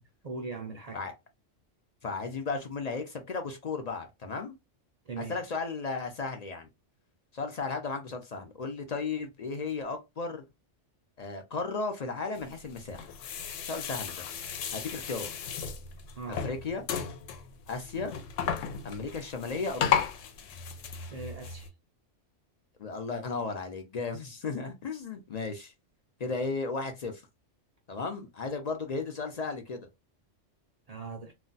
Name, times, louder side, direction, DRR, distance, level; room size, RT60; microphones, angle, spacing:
voice 1, 0.2-1.0 5.1-5.3 16.2-16.4 21.1-21.7 30.9-31.3, right 4 dB, 45° right, 0.5 m, -39 dB
voice 2, 2.0-4.5 5.2-6.7 7.3-10.4 11.2-13.1 13.6-14.3 14.7-15.3 16.3-16.8 17.7-18.1 18.8-20.1 22.8-25.7 26.2-27.2 27.9-29.9, left 4 dB, 50° left, 0.5 m, -35 dB
sound 1, 12.4-21.7, left 7 dB, 85° left, 0.9 m, -35 dB
2.3 x 2.2 x 3.9 m
omnidirectional pair, 1.3 m